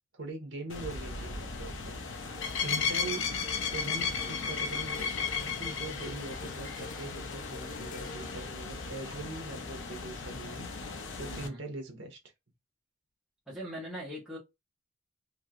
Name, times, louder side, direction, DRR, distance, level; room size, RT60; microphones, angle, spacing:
voice 1, 0.1-3.2 3.7-12.2, right 2 dB, 70° right, 0.9 m, -42 dB
sound 1, 0.7-11.5, left 5 dB, 75° left, 0.7 m, -35 dB
sound 2, 2.1-10.5 10.9-11.1, left 4 dB, 40° left, 0.3 m, -49 dB
voice 2, 11.3-11.6 13.5-14.4, equal, 5° right, 1.0 m, -41 dB
3.1 x 2.7 x 2.4 m
head